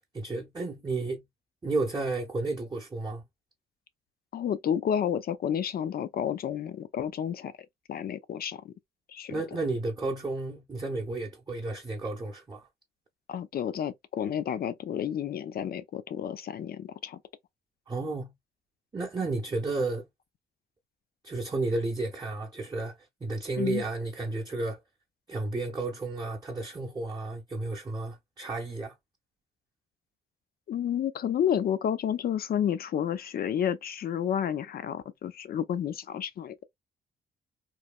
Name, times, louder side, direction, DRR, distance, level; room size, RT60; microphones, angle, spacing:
voice 1, 0.1-1.2 1.6-3.2 9.3-12.7 17.9-18.3 18.9-20.1 21.2-24.8 25.3-28.9, right 3 dB, 20° right, 0.7 m, -32 dB
voice 2, 4.3-7.5 7.9-8.7 9.1-9.3 13.3-17.2 23.6-23.8 30.7-36.6, left 9 dB, 55° left, 0.5 m, -30 dB
3.1 x 2.2 x 2.3 m
cardioid pair, 75°, 18 cm